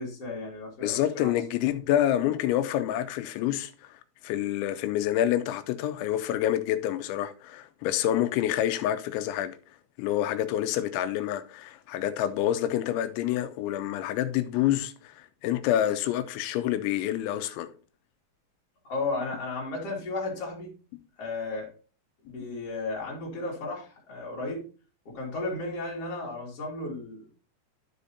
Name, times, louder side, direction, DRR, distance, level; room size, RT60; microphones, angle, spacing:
voice 1, 0.0-1.3 18.8-20.7 21.2-21.7 22.2-24.7 25.1-27.3, left 3 dB, 45° left, 2.4 m, -34 dB
voice 2, 0.8-9.6 10.0-17.7, left 12 dB, 85° left, 3.1 m, -27 dB
13.0 x 5.0 x 2.7 m
omnidirectional pair, 5.3 m